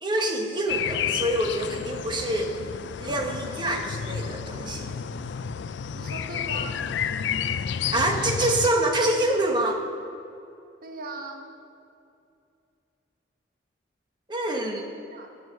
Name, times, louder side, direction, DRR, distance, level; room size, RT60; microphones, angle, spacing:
voice 1, 0.0-2.5 3.0-4.9 7.8-9.8 14.3-14.9, right 1 dB, 25° right, 2 dB, 1.0 m, -26 dB
sound 1, 0.7-8.7, left 7 dB, 70° left, 0.4 m, -31 dB
voice 2, 5.9-6.9 10.8-11.4 14.8-15.3, right 3 dB, 50° right, 3 dB, 0.9 m, -39 dB
11.0 x 8.2 x 6.8 m, 2.6 s
head